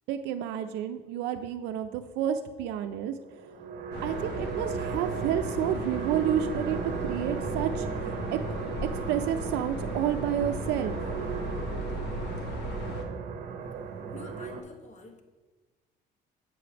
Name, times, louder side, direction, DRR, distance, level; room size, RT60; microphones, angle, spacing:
voice 1, 0.1-3.2 4.0-7.9 8.3-8.4 8.9-11.0, right 10 dB, 90° right, 7 dB, 0.4 m, -30 dB
sound 1, 3.2-14.6, right 6 dB, 60° right, 0.7 m, -36 dB
sound 2, 3.9-13.0, left 1 dB, 80° left, 0.9 m, -37 dB
voice 2, 14.1-15.2, left 3 dB, 45° left, 5 dB, 0.9 m, -47 dB
7.6 x 3.2 x 5.9 m, 1.3 s
cardioid pair, 110°, 17 cm